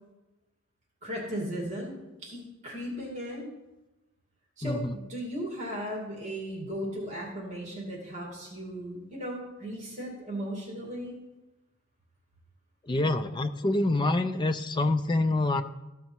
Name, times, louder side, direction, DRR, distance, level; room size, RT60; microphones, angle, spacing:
voice 1, 1.0-3.5 4.6-11.1, equal, 35° right, -2 dB, 2.4 m, -36 dB
voice 2, 4.6-5.0 12.9-15.6, left 2 dB, 20° left, 8 dB, 0.4 m, -26 dB
14.0 x 5.4 x 4.5 m, 1.0 s
head